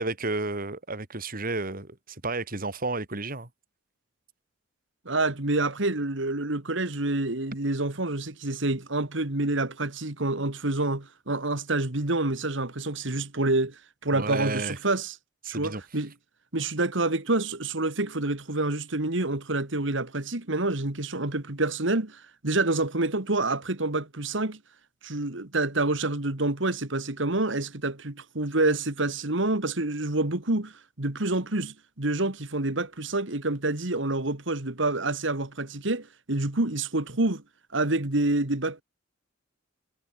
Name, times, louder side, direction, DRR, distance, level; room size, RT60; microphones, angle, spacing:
voice 1, 0.0-3.5 14.1-14.8 15.4-15.8, right 3 dB, 45° right, 3.3 m, -32 dB
voice 2, 5.1-15.2 15.5-16.1 16.5-24.6 25.0-37.4 37.7-38.8, right 2 dB, 70° right, 2.3 m, -27 dB
head